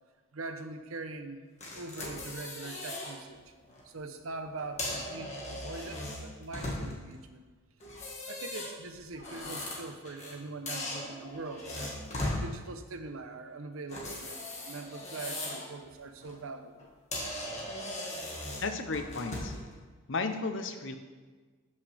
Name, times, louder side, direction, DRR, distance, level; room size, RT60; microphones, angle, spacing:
voice 1, 0.3-1.4 1.7-3.5 3.8-7.4 8.3-12.0 12.4-14.4 14.6-16.9, right 3 dB, 85° right, 8 dB, 0.8 m, -42 dB
sound 1, 1.6-3.1 3.6-3.8 4.6-7.1 7.8-10.4 10.7-12.4 13.9-15.7 16.1-16.3 16.8-16.9 17.1-19.6, left 1 dB, 35° left, 1.7 m, -38 dB
voice 2, 18.6-19.6 20.1-21.0, left 3 dB, 65° left, 8 dB, 0.7 m, -33 dB
13.0 x 5.6 x 3.4 m, 1.4 s
head